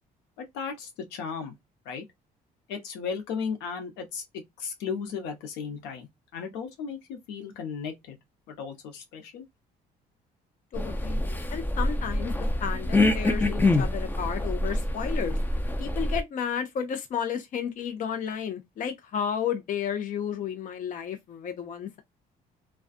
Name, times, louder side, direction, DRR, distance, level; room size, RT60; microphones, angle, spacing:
voice 1, 0.4-1.5 1.8-2.0 2.7-4.2 4.6-8.2 8.5-9.4, left 6 dB, 90° left, 0.9 m, -35 dB
voice 2, 10.7-12.3 12.6-15.4 15.8-22.0, left 8 dB, 50° left, 0.6 m, -32 dB
sound 1, 10.7-16.2, left 2 dB, 10° left, 0.4 m, -26 dB
2.4 x 2.3 x 2.5 m
cardioid pair, 110°, 17 cm